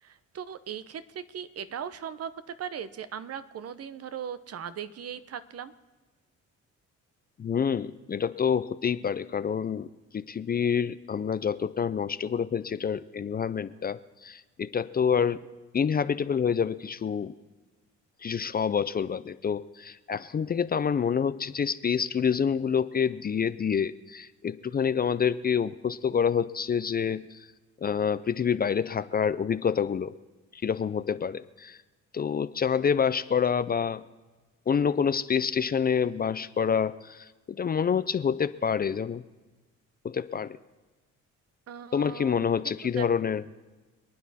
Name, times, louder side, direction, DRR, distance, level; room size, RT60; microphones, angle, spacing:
voice 1, 0.0-5.7 41.7-43.1, right 8 dB, 55° right, 13 dB, 0.8 m, -39 dB
voice 2, 7.4-9.9 10.1-15.4 15.7-17.3 18.2-27.3 27.8-30.1 30.5-31.8 32.1-34.1 34.7-39.2 40.0-40.6 41.9-43.4, left 7 dB, 30° left, 14 dB, 0.5 m, -27 dB
26.5 x 9.5 x 4.2 m, 1.2 s
cardioid pair, 90°, 30 cm